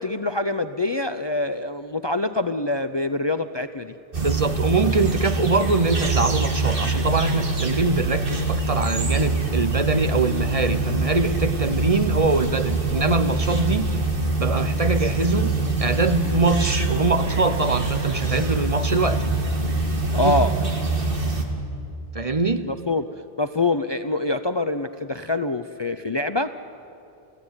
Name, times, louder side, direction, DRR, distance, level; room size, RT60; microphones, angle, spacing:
voice 1, 0.0-3.9 20.1-20.6 22.7-23.1 23.4-26.6, left 2 dB, 30° left, 10 dB, 0.6 m, -25 dB
sound 1, 4.1-21.5, right 3 dB, 60° right, 2.3 m, -24 dB
voice 2, 4.2-13.9 14.4-15.5 15.8-19.3 22.1-22.7, right 3 dB, 35° right, 10 dB, 0.9 m, -23 dB
29.0 x 16.0 x 9.8 m, 2.7 s
omnidirectional pair, 1.1 m